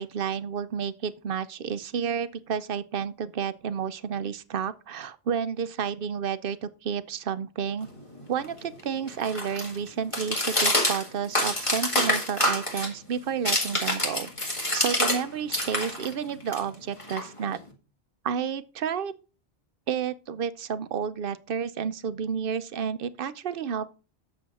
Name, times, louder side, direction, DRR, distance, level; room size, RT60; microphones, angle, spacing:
voice 1, 0.0-7.9 8.3-14.3 14.7-17.6 18.2-19.1 19.9-23.9, right 7 dB, 65° right, 0.8 m, -31 dB
sound 1, 7.8-15.2 15.5-17.7, left 1 dB, 30° left, 1.9 m, -28 dB
8.4 x 6.9 x 4.1 m
omnidirectional pair, 1.0 m